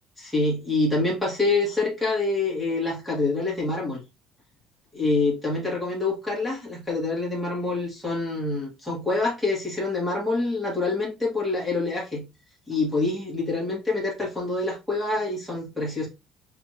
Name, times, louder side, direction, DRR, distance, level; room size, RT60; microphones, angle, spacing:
voice 1, 0.2-4.0 4.9-12.2 12.7-16.1, left 3 dB, ahead, 2.0 m, -26 dB
4.1 x 3.6 x 3.0 m
cardioid pair, 165°, 0 cm